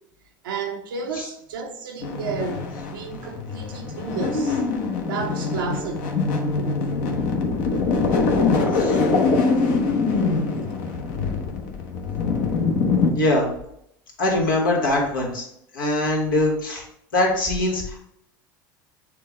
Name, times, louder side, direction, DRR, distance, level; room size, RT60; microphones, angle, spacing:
voice 1, 0.4-4.6 5.1-6.1, right 5 dB, 90° right, 0.6 m, -32 dB
sound 1, 2.0-13.1, left 4 dB, 65° left, 0.9 m, -23 dB
voice 2, 13.1-13.5 14.2-15.5 15.7-16.8 17.1-18.0, left 2 dB, 85° left, 1.4 m, -22 dB
6.4 x 2.3 x 3.6 m
hypercardioid pair, 90°, 11 cm